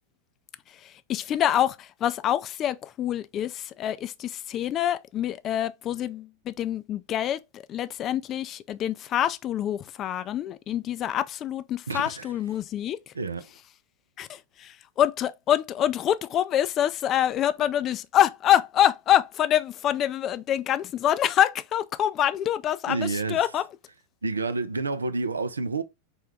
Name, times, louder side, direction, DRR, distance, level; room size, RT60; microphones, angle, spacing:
voice 1, 0.7-13.1 14.2-23.7, left 11 dB, 35° left, 0.3 m, -26 dB
voice 2, 11.9-12.3 13.1-13.4 22.9-23.4 24.2-25.8, right 3 dB, 85° right, 0.3 m, -29 dB
4.6 x 2.2 x 3.2 m
figure-of-eight pair, 90°, 0 cm